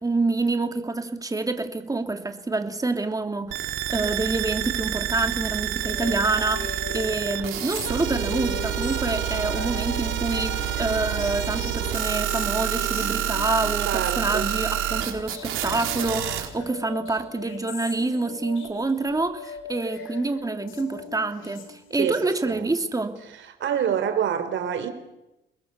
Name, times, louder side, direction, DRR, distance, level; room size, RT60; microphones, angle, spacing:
voice 1, 0.0-23.2, right 3 dB, 15° right, 2.8 m, -27 dB
sound 1, 3.5-16.5, right 11 dB, 90° right, 4.0 m, -28 dB
sound 2, 5.8-22.2, left 5 dB, 85° left, 4.8 m, -39 dB
voice 2, 13.9-14.5 21.9-22.2 22.5-22.7 23.6-24.9, right 8 dB, 70° right, 4.1 m, -26 dB
30.0 x 21.0 x 6.9 m
cardioid pair, 90°, 20 cm